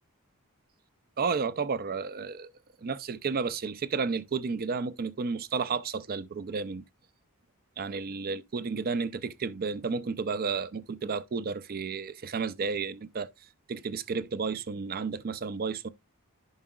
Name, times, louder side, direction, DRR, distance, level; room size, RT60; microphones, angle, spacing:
voice 1, 1.2-2.5 2.8-6.8 7.8-13.3 13.7-15.9, right 5 dB, 45° right, 0.5 m, -32 dB
11.0 x 4.9 x 2.3 m
head